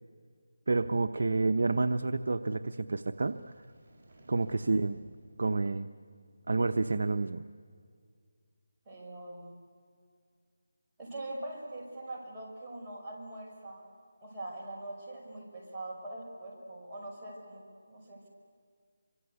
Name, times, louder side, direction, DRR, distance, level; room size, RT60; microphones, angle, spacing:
voice 1, 0.7-3.4 4.3-5.0 5.4-5.9 6.5-7.4, right 3 dB, 65° right, 8 dB, 0.8 m, -29 dB
sound 1, 2.7-6.8, right 1 dB, 35° right, 5.2 m, -58 dB
voice 2, 8.9-9.5 11.0-13.9 14.2-18.3, right 1 dB, 15° right, -6 dB, 5.8 m, -43 dB
27.0 x 25.0 x 8.2 m, 2.1 s
figure-of-eight pair, 165°, 0 cm